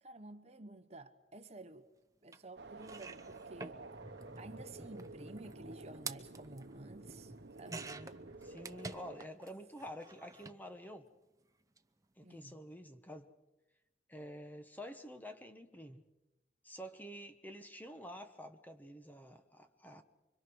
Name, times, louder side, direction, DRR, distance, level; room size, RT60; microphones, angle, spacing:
voice 1, 0.0-1.9 2.2-3.8 4.4-7.9 12.2-12.6, right 2 dB, 35° right, 1.1 m, -52 dB
sound 1, 2.3-2.4 2.8-9.5 9.8-10.6 11.6-11.8 12.0-12.1, right 3 dB, 20° right, 0.8 m, -49 dB
sound 2, 2.6-9.2, right 3 dB, 75° right, 0.9 m, -52 dB
voice 2, 8.4-11.1 12.2-13.3 14.1-16.0 16.6-20.0, equal, 10° left, 1.1 m, -49 dB
25.5 x 24.5 x 6.3 m
head